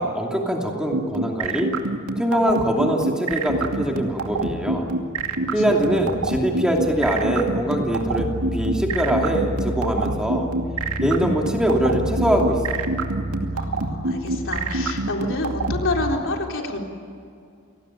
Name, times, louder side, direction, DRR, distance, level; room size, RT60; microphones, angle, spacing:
voice 1, 0.0-1.7 2.2-4.9 5.5-10.5 11.0-12.9, equal, 5° right, 0 dB, 2.7 m, -23 dB
sound 1, 0.9-15.8, right 3 dB, 70° right, 2.5 m, -25 dB
sound 2, 3.5-16.2, right 1 dB, 45° right, 5.9 m, -32 dB
voice 2, 13.5-16.8, left 2 dB, 60° left, 1 dB, 3.8 m, -28 dB
29.0 x 19.5 x 9.1 m, 2.4 s
head